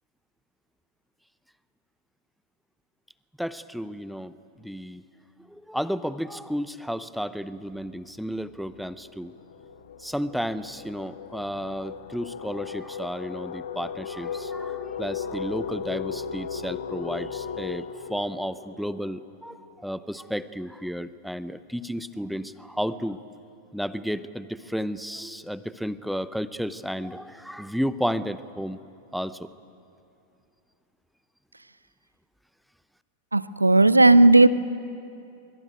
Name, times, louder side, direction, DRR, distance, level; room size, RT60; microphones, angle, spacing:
voice 1, 3.4-5.0 5.5-9.3 10.0-23.2 23.7-28.8 29.1-29.5, equal, ahead, 15 dB, 0.8 m, -32 dB
sound 1, 7.7-7.9 8.3-19.8, left 6 dB, 65° left, 1.4 m, -37 dB
voice 2, 33.3-34.5, right 2 dB, 85° right, 17 dB, 0.7 m, -15 dB
24.5 x 24.0 x 9.2 m, 2.6 s
figure-of-eight pair, 90°, 0 cm